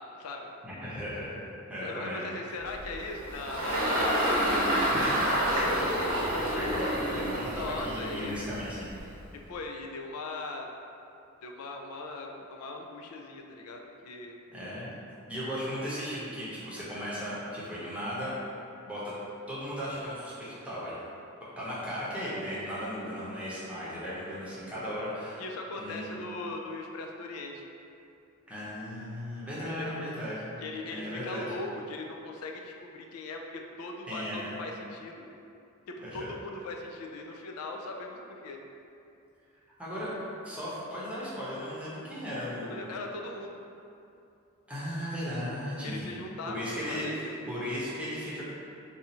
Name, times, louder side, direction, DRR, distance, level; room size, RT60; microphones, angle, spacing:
voice 1, 0.0-0.5 1.8-4.2 4.8-5.1 7.5-8.5 9.5-10.7 11.4-14.4 25.4-27.6 29.6-30.1 30.6-35.3 35.9-38.6 42.6-43.7 45.8-47.4, left 2 dB, 85° left, 2 dB, 0.3 m, -39 dB
voice 2, 0.6-1.4 1.7-2.2 4.9-8.9 14.5-14.9 15.3-18.4 18.8-19.0 19.5-20.9 21.6-25.4 25.8-26.2 28.5-30.5 30.9-31.4 34.1-34.5 36.1-36.3 39.8-43.0 44.7-46.2 46.5-48.4, equal, 5° right, -9 dB, 0.7 m, -36 dB
Engine, 2.7-9.3, equal, 80° right, 0.8 m, -29 dB
2.7 x 2.4 x 4.1 m, 2.7 s
head